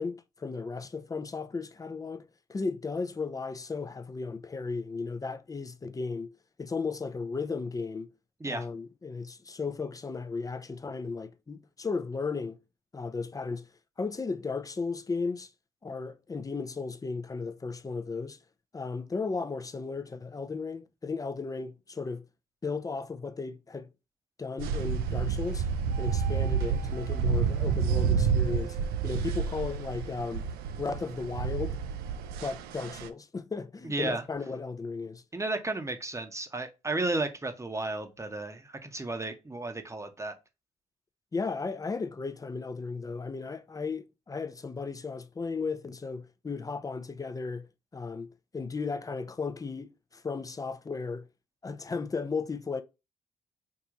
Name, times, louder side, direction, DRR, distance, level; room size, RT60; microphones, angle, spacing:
voice 1, 0.0-6.3 6.6-8.1 8.5-12.6 12.9-13.7 14.0-15.5 15.8-18.4 18.7-22.3 22.6-23.9 24.4-25.7 26.0-28.8 29.0-30.5 30.8-31.8 32.4-35.2 41.3-47.7 47.9-48.3 48.5-51.3 51.6-52.8, left 4 dB, 20° left, 0.5 m, -35 dB
sound 1, 24.6-33.1, right 6 dB, 75° right, 0.4 m, -29 dB
voice 2, 33.8-34.2 35.3-40.3, right 2 dB, 20° right, 0.9 m, -33 dB
4.7 x 2.6 x 2.5 m
hypercardioid pair, 55°, 16 cm